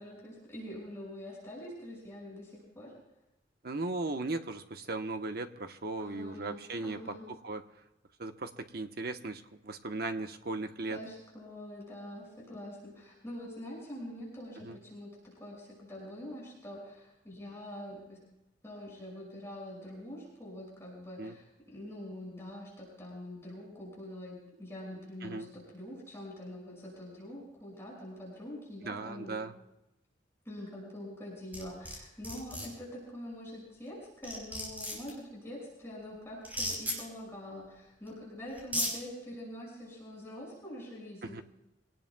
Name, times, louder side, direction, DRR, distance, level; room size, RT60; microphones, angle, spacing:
voice 1, 0.0-2.9 6.0-7.3 10.9-18.2 18.6-29.4 30.4-41.4, left 1 dB, 15° left, -4 dB, 6.2 m, -45 dB
voice 2, 3.6-7.6 8.2-11.0 14.6-14.8 21.2-21.3 25.2-25.5 28.8-29.5 41.2-41.4, right 2 dB, 60° right, 7 dB, 1.1 m, -37 dB
sound 1, 31.5-32.0 32.2-32.7 33.9-34.0 34.2-35.1 36.4-37.0 38.1-38.2 38.6-38.9, equal, 10° right, 5.0 m, -34 dB
25.5 x 18.5 x 2.3 m, 0.91 s
head